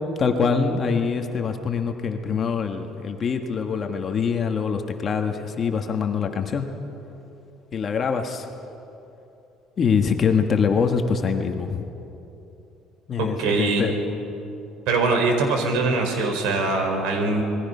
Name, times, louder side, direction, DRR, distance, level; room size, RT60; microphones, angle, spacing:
voice 1, 0.2-6.7 7.7-8.5 9.8-11.9 13.1-13.9, left 6 dB, 30° left, 5 dB, 1.4 m, -24 dB
voice 2, 13.2-13.9 14.9-17.4, right 3 dB, 80° right, 4 dB, 4.4 m, -22 dB
27.0 x 20.5 x 5.6 m, 2.9 s
cardioid pair, 160°, 0 cm